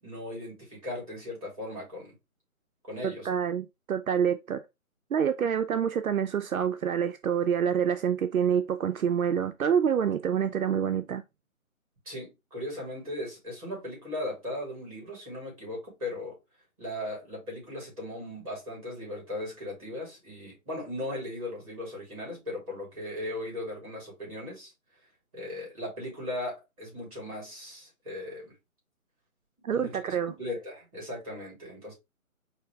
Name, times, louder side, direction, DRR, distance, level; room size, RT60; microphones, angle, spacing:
voice 1, 0.0-2.2 2.8-3.3 12.0-16.4 16.8-24.7 25.3-28.5 29.7-30.0 30.4-31.9, left 1 dB, 25° right, 3.1 m, -37 dB
voice 2, 3.0-4.6 5.1-11.2 29.6-30.3, right 8 dB, 75° right, 0.5 m, -27 dB
4.8 x 2.8 x 3.3 m
hypercardioid pair, 180°, 43 cm